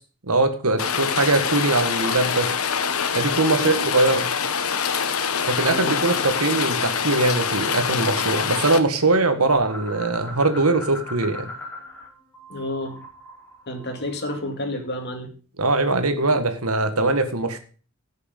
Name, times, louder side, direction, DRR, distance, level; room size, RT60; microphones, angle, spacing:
voice 1, 0.3-2.5 3.1-4.3 5.5-11.5 15.6-17.6, right 2 dB, 90° right, 8 dB, 1.7 m, -21 dB
Rain, 0.8-8.8, left 6 dB, 75° left, 1.2 m, -25 dB
voice 2, 3.5-3.9 5.7-6.0 12.5-13.0 13.7-15.3, left 1 dB, 50° left, 4 dB, 2.5 m, -30 dB
sound 1, 9.5-12.1 12.3-14.6, left 1 dB, 10° left, 3.2 m, -39 dB
15.0 x 6.7 x 5.3 m, 0.38 s
head